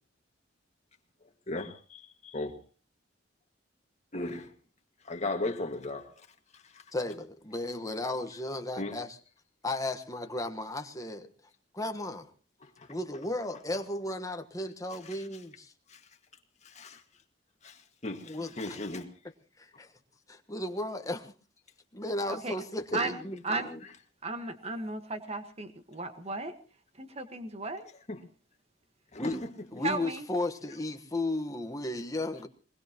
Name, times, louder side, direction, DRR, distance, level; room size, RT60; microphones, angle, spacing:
voice 1, 1.2-2.6 4.1-4.5 5.0-6.1 6.5-6.8 8.8-9.0 12.6-12.9 15.0-15.3 15.9-16.0 16.6-17.0 17.6-19.1 22.9-23.0 28.1-28.2 29.1-29.5, left 2 dB, 35° left, 2.0 m, -37 dB
voice 2, 6.9-9.2 9.6-11.3 11.7-12.3 12.9-15.7 18.3-18.8 19.6-19.9 20.3-21.3 21.9-23.8 29.2-29.4 29.7-32.5, left 2 dB, 20° left, 1.3 m, -35 dB
voice 3, 22.9-23.7 24.2-26.5 27.0-27.9 29.8-30.3, right 3 dB, 35° right, 1.5 m, -35 dB
22.5 x 20.5 x 3.0 m
head